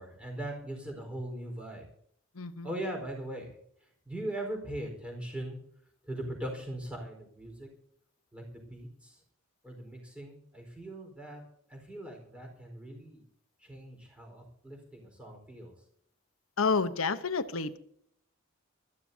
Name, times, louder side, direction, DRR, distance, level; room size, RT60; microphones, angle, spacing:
voice 1, 0.0-1.8 2.6-3.5 4.1-5.6 6.1-7.7 8.3-9.2 9.6-11.4 11.7-13.2 13.6-15.7, right 1 dB, 5° right, 2 dB, 4.4 m, -40 dB
voice 2, 2.4-2.7 16.6-17.8, left 4 dB, 85° left, 11 dB, 1.0 m, -29 dB
23.5 x 14.0 x 2.8 m, 0.67 s
head